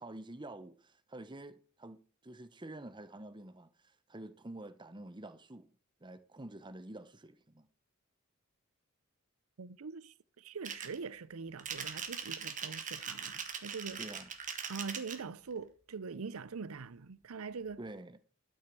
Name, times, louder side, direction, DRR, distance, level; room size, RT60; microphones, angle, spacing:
voice 1, 0.0-5.7 6.0-7.7 14.0-14.3 17.8-18.2, right 1 dB, 20° right, 0.9 m, -48 dB
voice 2, 9.6-14.0 14.7-17.8, right 5 dB, 85° right, 0.6 m, -43 dB
sound 1, 10.6-11.0 11.6-15.2, right 7 dB, 35° right, 1.6 m, -41 dB
12.5 x 6.4 x 6.0 m
head